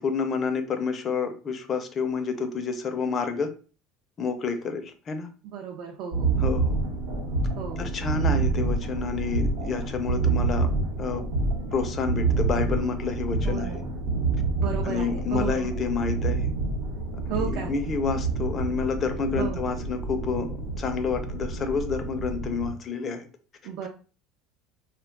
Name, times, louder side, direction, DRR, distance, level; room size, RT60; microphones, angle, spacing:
voice 1, 0.0-3.5 4.2-5.3 6.4-6.8 7.8-10.7 11.0-11.2 11.7-13.8 14.8-16.5 17.1-23.3, left 5 dB, 35° left, 7 dB, 0.4 m, -29 dB
voice 2, 5.4-6.6 7.6-7.9 13.4-13.8 14.6-15.7 17.3-17.7 19.3-19.6 23.6-23.9, right 7 dB, 65° right, 0 dB, 0.5 m, -34 dB
sound 1, 6.1-22.7, right 3 dB, 85° right, 0.9 m, -28 dB
2.2 x 2.2 x 3.6 m, 0.37 s
supercardioid pair, 125°, 0 cm